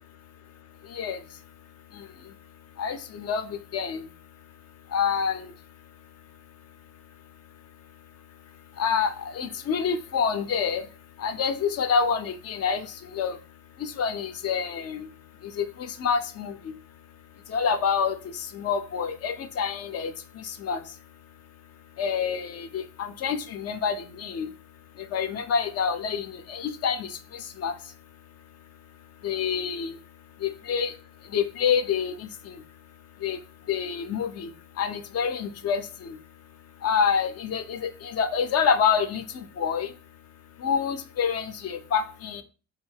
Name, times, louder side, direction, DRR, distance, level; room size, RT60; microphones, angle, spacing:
voice 1, 2.8-3.4 3.7-4.0 4.9-5.4 8.8-10.8 11.2-12.8 13.1-13.3 13.8-15.1 16.0-16.5 17.5-18.2 18.5-20.1 20.5-20.8 22.0-24.5 25.1-27.1 27.6-27.7 29.2-29.9 30.4-30.9 31.3-32.3 33.2-33.4 33.7-34.5 34.8-35.8 36.8-39.2 39.6-39.9 40.6-42.4, left 6 dB, 35° left, 10 dB, 0.4 m, -27 dB
2.6 x 2.3 x 3.2 m, 0.36 s
figure-of-eight pair, 40°, 45 cm